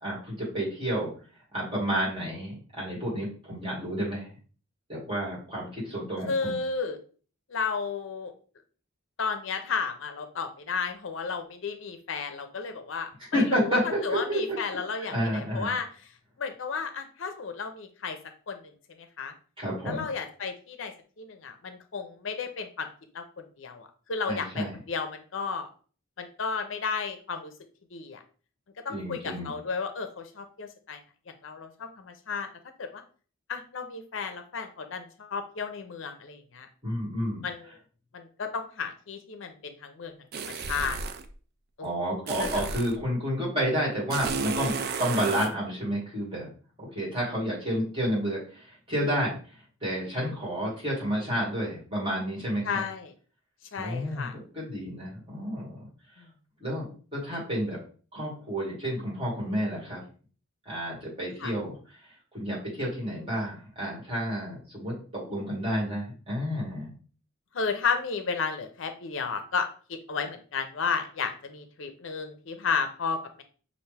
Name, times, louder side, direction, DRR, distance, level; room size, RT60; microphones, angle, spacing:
voice 1, 0.0-1.1 1.5-4.3 4.9-6.6 13.3-14.6 15.1-15.7 19.6-20.0 24.3-24.8 28.9-29.5 36.8-37.4 41.8-44.7 45.0-46.5 46.8-49.4 49.8-52.8 53.8-55.9 56.6-57.8 58.1-60.0 60.7-61.8 62.3-66.9, equal, 25° right, -5 dB, 2.0 m, -30 dB
voice 2, 6.3-7.0 7.5-8.3 9.2-15.9 16.4-18.2 18.5-18.6 19.0-19.3 19.9-22.9 23.1-25.7 26.2-27.5 27.9-28.2 28.8-31.0 31.4-32.5 32.8-33.0 33.5-36.7 37.4-37.7 38.1-41.0 41.8-41.9 42.5-42.6 52.6-53.1 53.7-54.3 56.2-56.3 61.4-61.5 67.5-73.4, left 5 dB, 65° left, 7 dB, 0.6 m, -33 dB
sound 1, 40.3-41.3 42.3-43.0 44.1-45.5, right 4 dB, 50° right, 0.4 m, -32 dB
5.8 x 2.5 x 3.3 m, 0.40 s
head